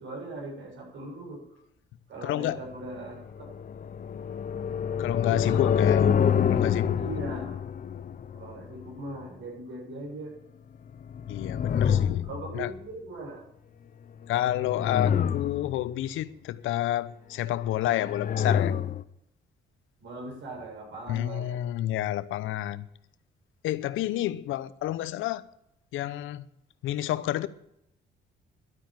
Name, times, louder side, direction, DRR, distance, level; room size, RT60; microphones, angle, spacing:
voice 1, 0.0-1.6 2.1-3.5 5.3-5.6 7.0-7.6 8.4-10.3 12.2-13.4 20.0-21.6, right 2 dB, 70° right, 7.1 m, -40 dB
voice 2, 2.2-2.6 5.0-6.1 6.5-7.0 11.3-12.2 12.5-12.7 14.3-18.7 21.1-22.9 23.6-25.4 25.9-26.4 26.8-27.5, left 13 dB, 85° left, 0.8 m, -29 dB
sound 1, 3.3-8.9 10.9-12.8 14.3-15.9 17.7-19.0, left 8 dB, 45° left, 0.7 m, -27 dB
11.5 x 9.2 x 8.9 m
cardioid pair, 90°, 20 cm